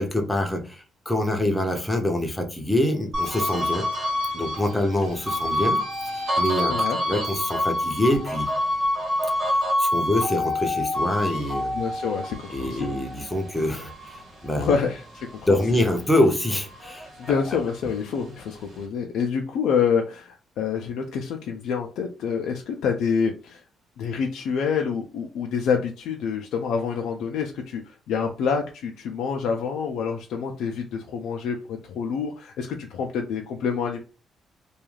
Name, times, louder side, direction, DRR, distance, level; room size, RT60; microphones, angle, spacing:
voice 1, 0.0-3.9 4.3-8.5 9.4-11.8 12.5-14.8 15.5-17.6, left 1 dB, 5° left, 3 dB, 0.5 m, -25 dB
sound 1, 3.1-15.8 16.2-17.8, left 1 dB, 40° right, 1.1 m, -27 dB
voice 2, 11.7-12.9 14.6-15.0 15.5-15.6 17.2-23.6 24.0-34.0, left 6 dB, 80° left, 2 dB, 0.3 m, -27 dB
2.3 x 2.3 x 3.1 m, 0.34 s
cardioid pair, 155°, 0 cm